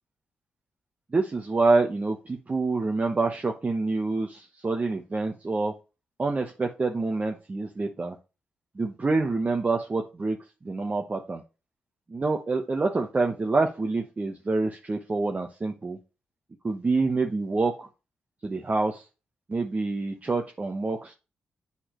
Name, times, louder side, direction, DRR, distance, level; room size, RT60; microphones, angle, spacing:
voice 1, 1.1-5.7 6.2-8.2 8.8-10.4 10.6-11.4 12.1-16.0 16.6-17.9 18.4-19.0 19.5-21.1, right 3 dB, 35° right, 3 dB, 1.0 m, -27 dB
8.0 x 4.2 x 3.0 m, 0.29 s
supercardioid pair, 45°, 4 cm